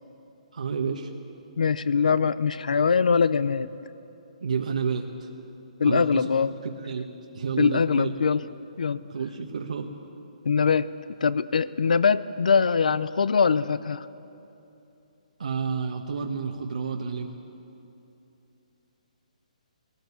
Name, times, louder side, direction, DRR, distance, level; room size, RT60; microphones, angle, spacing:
voice 1, 0.5-1.1 4.4-5.3 5.8-7.1 7.3-8.1 9.1-9.9 15.4-17.3, right 5 dB, 75° right, 1 dB, 1.6 m, -30 dB
voice 2, 1.6-3.7 5.8-6.5 7.6-8.4 8.8-9.0 10.5-10.9 11.2-14.1, left 5 dB, 85° left, 17 dB, 0.6 m, -22 dB
20.0 x 18.5 x 8.6 m, 2.9 s
hypercardioid pair, 165°, 4 cm